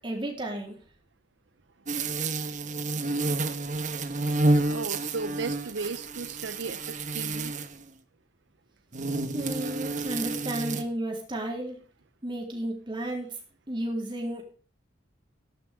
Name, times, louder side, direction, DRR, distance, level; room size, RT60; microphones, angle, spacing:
voice 1, 0.0-0.8 9.3-11.8 12.2-13.4 13.7-14.4, right 1 dB, 25° right, 1 dB, 3.7 m, -33 dB
sound 1, 1.9-7.8 8.9-10.8, right 2 dB, 40° right, 1.3 m, -29 dB
voice 2, 4.6-7.6, right 4 dB, 65° right, 12 dB, 0.7 m, -35 dB
14.0 x 11.0 x 3.6 m, 0.40 s
head